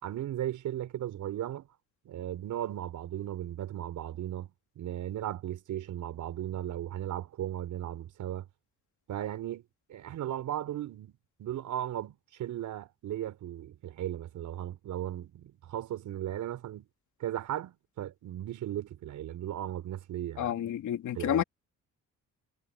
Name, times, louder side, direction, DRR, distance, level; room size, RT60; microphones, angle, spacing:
voice 1, 0.0-1.7 2.0-8.5 9.1-9.6 9.9-11.1 11.4-16.9 17.2-20.6 21.1-21.4, right 12 dB, 75° right, 4.4 m, -36 dB
voice 2, 20.4-21.4, left 10 dB, 75° left, 3.1 m, -30 dB
cardioid pair, 90°, 30 cm